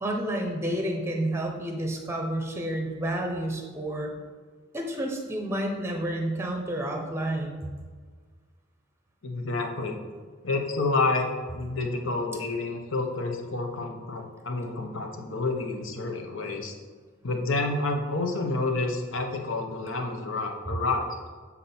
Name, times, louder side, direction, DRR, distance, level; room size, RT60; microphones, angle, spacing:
voice 1, 0.0-4.1 4.7-7.6, right 1 dB, 10° right, 2 dB, 0.7 m, -30 dB
voice 2, 9.2-10.0 10.4-11.3 11.5-16.7 17.2-21.2, left 3 dB, 70° left, 3 dB, 0.9 m, -29 dB
7.3 x 4.2 x 4.3 m, 1.6 s
head